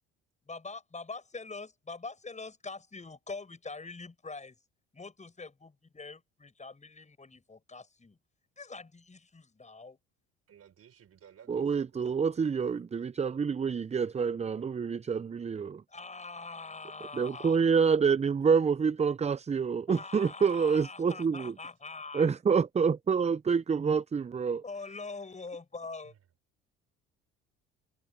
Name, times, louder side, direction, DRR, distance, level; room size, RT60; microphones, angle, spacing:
voice 1, 0.5-4.6 4.9-8.2 8.6-10.0 15.9-17.6 19.9-22.4 24.6-26.1, left 3 dB, 25° left, 7.6 m, -43 dB
voice 2, 10.5-12.4 26.0-26.2, right 9 dB, 50° right, 4.7 m, -57 dB
voice 3, 11.5-15.8 17.1-21.5 22.1-24.6, right 6 dB, 20° right, 0.6 m, -27 dB
hypercardioid pair, 70°, 31 cm